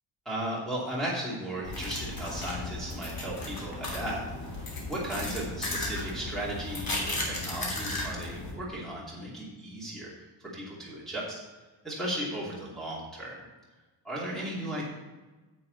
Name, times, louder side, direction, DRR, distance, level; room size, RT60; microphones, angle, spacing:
voice 1, 0.2-4.2 4.9-10.1 10.5-11.3 11.8-13.4 14.0-14.8, right 1 dB, ahead, -8 dB, 2.9 m, -35 dB
sound 1, 1.7-8.5, left 2 dB, 45° left, 2.8 m, -35 dB
9.5 x 8.0 x 4.1 m, 1.2 s
wide cardioid pair, 135°, 49 cm